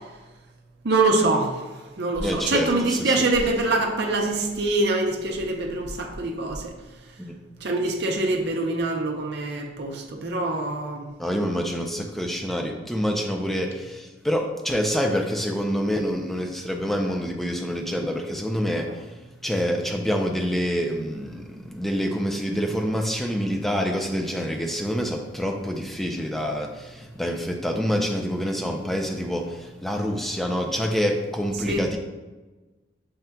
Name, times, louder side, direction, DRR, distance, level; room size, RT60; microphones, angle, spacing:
voice 1, 0.8-1.5 2.0-6.7 7.6-11.1 31.7-31.8, right 2 dB, 55° right, 2 dB, 0.6 m, -24 dB
voice 2, 2.2-3.3 7.2-7.3 11.2-19.1 19.4-32.0, equal, ahead, 1 dB, 0.4 m, -27 dB
5.5 x 3.7 x 2.2 m, 1.2 s
head